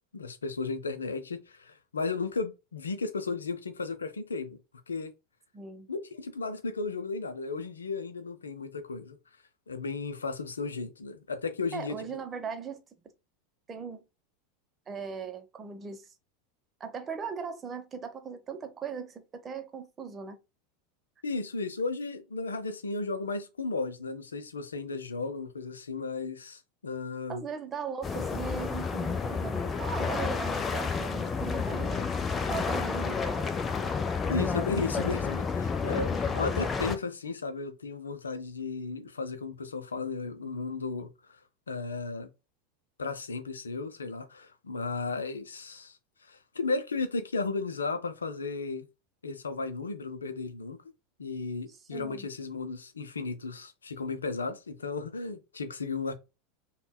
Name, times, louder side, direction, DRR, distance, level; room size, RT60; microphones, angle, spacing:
voice 1, 0.1-4.6 4.9-5.1 5.9-9.2 9.7-12.0 21.2-27.4 34.3-41.4 41.7-42.3 43.0-48.9 49.2-50.8 51.2-56.1, left 4 dB, 75° left, 0.6 m, -34 dB
voice 2, 5.5-5.9 11.7-12.8 13.7-14.0 14.9-16.1 16.8-20.4 27.3-32.0 32.4-33.7 35.9-36.2 51.7-52.3, right 6 dB, 25° right, 0.8 m, -39 dB
sound 1, 28.0-37.0, left 5 dB, 20° left, 0.5 m, -30 dB
5.3 x 2.3 x 2.2 m
figure-of-eight pair, 85°, 0 cm